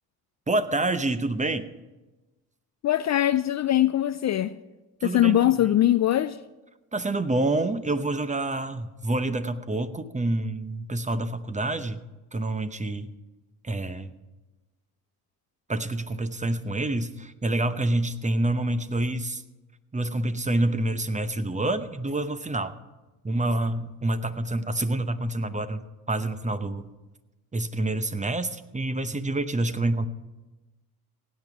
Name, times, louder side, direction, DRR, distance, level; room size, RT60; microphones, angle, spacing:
voice 1, 0.5-1.7 5.0-5.5 6.9-12.0 12.3-13.1 13.6-14.1 15.7-19.4 19.9-22.7 23.2-25.8 26.1-26.9 27.5-30.1, right 2 dB, 15° right, 0.8 m, -27 dB
voice 2, 2.8-4.5 5.0-6.4, left 12 dB, 40° left, 0.4 m, -22 dB
16.5 x 9.2 x 4.9 m
hypercardioid pair, 55°, 45 cm